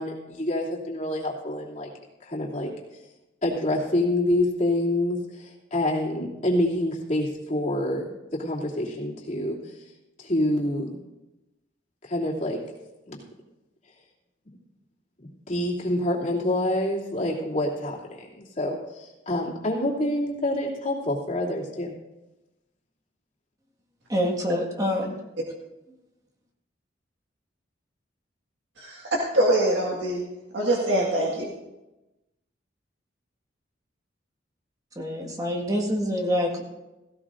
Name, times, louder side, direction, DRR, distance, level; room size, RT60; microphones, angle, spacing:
voice 1, 0.0-1.9 2.2-2.7 3.4-8.1 8.4-9.6 10.2-11.0 12.1-12.6 13.1-13.2 15.5-21.9, left 1 dB, 40° left, -4 dB, 2.8 m, -27 dB
voice 2, 24.1-25.2 35.0-36.6, equal, 20° right, 1 dB, 1.8 m, -26 dB
voice 3, 28.8-30.2 30.5-31.5, right 1 dB, 70° right, -3 dB, 1.8 m, -24 dB
17.0 x 16.0 x 2.6 m, 1.0 s
head